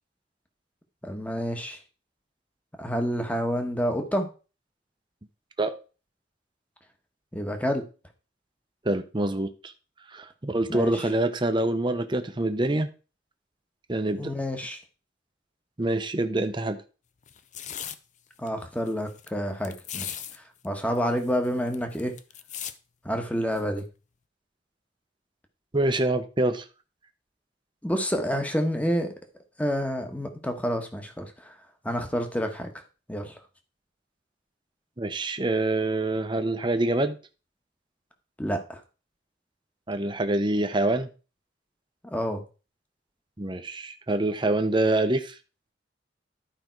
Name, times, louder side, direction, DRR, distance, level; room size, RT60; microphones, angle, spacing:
voice 1, 1.0-1.8 2.8-4.3 7.3-7.8 10.7-11.0 14.2-14.8 18.4-20.2 20.6-22.1 23.0-23.8 27.8-29.1 29.6-31.5 31.8-32.7 33.1-33.4 38.4-38.8 42.0-42.4, equal, 10° left, 5 dB, 1.3 m, -28 dB
voice 2, 8.8-9.7 10.1-12.9 13.9-14.3 15.8-16.8 25.7-26.6 35.0-37.2 39.9-41.1 43.4-45.4, right 2 dB, 25° right, 8 dB, 0.8 m, -26 dB
sound 1, 17.3-18.0 18.5-18.6 18.8-19.3 19.6-20.4 20.6-20.7 20.9-22.7 23.6-23.8, left 9 dB, 40° left, 0.6 m, -38 dB
12.0 x 5.2 x 4.6 m, 0.34 s
head